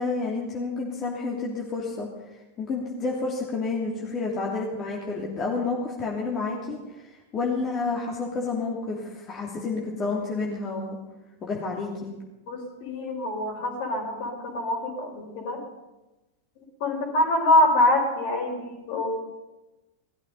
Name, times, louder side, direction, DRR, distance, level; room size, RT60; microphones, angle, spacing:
voice 1, 0.0-2.1 2.6-11.0 11.4-12.1, left 3 dB, 25° left, -2 dB, 2.9 m, -30 dB
voice 2, 12.5-15.6 16.8-19.1, left 1 dB, 50° left, 3 dB, 4.7 m, -24 dB
19.0 x 13.5 x 5.5 m, 1.1 s
figure-of-eight pair, 90°, 0 cm